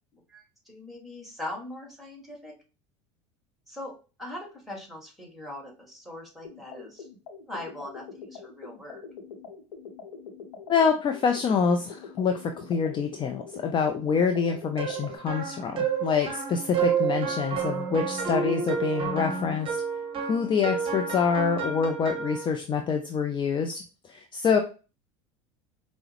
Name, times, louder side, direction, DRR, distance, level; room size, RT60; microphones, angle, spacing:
voice 1, 0.1-2.5 3.7-3.9 4.2-7.1 7.5-9.0, left 1 dB, ahead, 1 dB, 1.7 m, -41 dB
sound 1, 6.4-15.2, left 5 dB, 85° left, 0.8 m, -44 dB
voice 2, 10.7-19.8 20.2-24.6, left 6 dB, 30° left, 5 dB, 0.5 m, -26 dB
sound 2, 14.8-22.5, right 6 dB, 35° right, 0.8 m, -30 dB
4.6 x 2.1 x 2.9 m, 0.33 s
hypercardioid pair, 85°, 16 cm